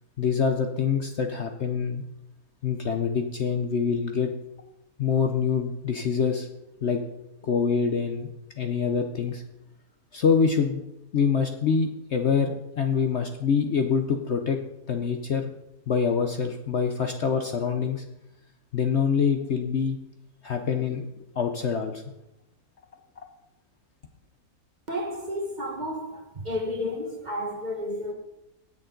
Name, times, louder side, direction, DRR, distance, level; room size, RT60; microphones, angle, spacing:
voice 1, 0.2-2.0 2.6-4.3 5.0-6.5 6.8-7.0 7.4-8.3 8.6-9.4 10.1-10.8 11.1-14.6 14.9-15.5 15.9-18.0 18.7-20.0 20.4-22.0 23.2-23.3, left 6 dB, 55° left, 0.9 m, -25 dB
voice 2, 24.9-28.1, left 1 dB, 30° right, 1.4 m, -31 dB
18.0 x 6.9 x 3.8 m
omnidirectional pair, 1.7 m